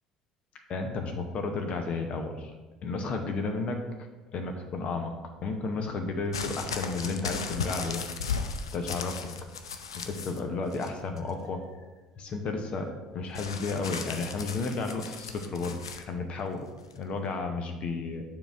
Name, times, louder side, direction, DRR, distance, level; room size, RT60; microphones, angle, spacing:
voice 1, 0.7-2.5 2.8-3.8 4.3-5.2 5.4-8.0 8.7-9.3 10.0-11.7 12.2-16.7 17.0-18.2, left 3 dB, 45° left, 5 dB, 0.7 m, -32 dB
sound 1, 6.3-10.4 10.7-11.3 13.4-16.0 16.9-17.0, left 5 dB, 80° left, 0.4 m, -36 dB
7.0 x 3.8 x 4.3 m, 1.2 s
figure-of-eight pair, 55°, 3 cm